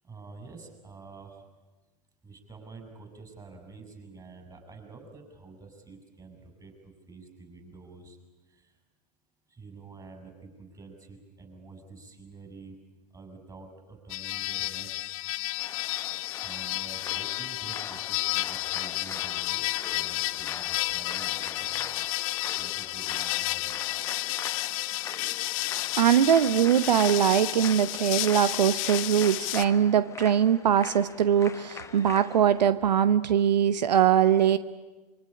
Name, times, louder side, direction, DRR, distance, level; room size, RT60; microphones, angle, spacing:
voice 1, 0.0-1.4 2.2-8.2 8.5-8.7 9.5-12.8 13.1-15.2 16.4-22.1 22.6-23.8, right 3 dB, 15° right, 5 dB, 6.5 m, -48 dB
sound 1, 14.1-29.6, left 21 dB, 55° left, 0.8 m, -31 dB
sound 2, 15.6-32.7, left 5 dB, 15° left, 1.3 m, -43 dB
voice 2, 26.0-34.6, right 9 dB, 80° right, 14 dB, 0.9 m, -22 dB
25.5 x 23.5 x 9.9 m, 1.1 s
hypercardioid pair, 110°, 21 cm